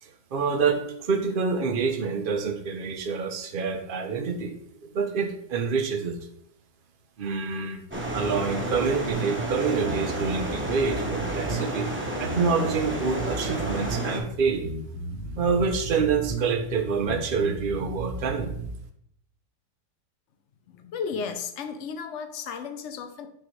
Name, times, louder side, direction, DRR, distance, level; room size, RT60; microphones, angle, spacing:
voice 1, 0.0-4.5 4.8-6.2 7.2-7.8 8.1-11.9 12.2-14.7 15.4-18.5, right 5 dB, 70° right, 4 dB, 0.5 m, -27 dB
sound 1, 7.9-14.2, right 1 dB, 10° right, 0.6 m, -31 dB
sound 2, 9.1-18.7, right 2 dB, 45° right, 0.9 m, -34 dB
voice 2, 20.7-23.3, left 6 dB, 65° left, 7 dB, 0.7 m, -34 dB
8.9 x 3.8 x 3.1 m, 0.72 s
omnidirectional pair, 1.9 m